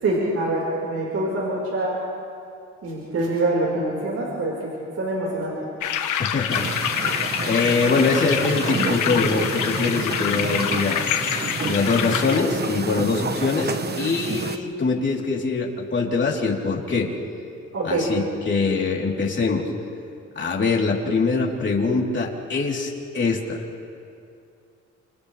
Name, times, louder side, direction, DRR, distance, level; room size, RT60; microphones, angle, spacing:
voice 1, 0.0-2.0 2.8-4.7 4.9-5.5 17.7-18.1, right 2 dB, 55° right, -4 dB, 5.1 m, -25 dB
sound 1, 5.8-12.4, left 9 dB, 80° left, 1.4 m, -26 dB
voice 2, 6.2-11.0 11.7-17.1 17.8-19.7 20.4-23.6, left 4 dB, 40° left, -2 dB, 3.9 m, -23 dB
sound 2, 6.5-14.6, right 4 dB, 35° right, 1.3 m, -29 dB
30.0 x 27.5 x 3.5 m, 2.4 s
cardioid pair, 90°, 30 cm